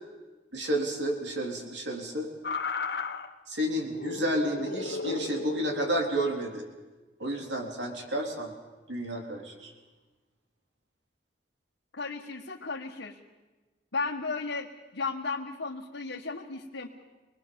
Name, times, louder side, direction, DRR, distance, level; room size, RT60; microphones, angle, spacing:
voice 1, 0.5-2.3 3.5-6.6 7.2-8.5 8.9-9.7, right 1 dB, 80° right, 2 dB, 3.9 m, -31 dB
sound 1, 2.4-3.3 3.8-6.0 7.2-7.4, left 4 dB, 65° left, 1.3 m, -34 dB
voice 2, 11.9-13.2 13.9-16.9, left 4 dB, 90° left, -2 dB, 1.8 m, -34 dB
25.5 x 20.5 x 7.1 m, 1.2 s
head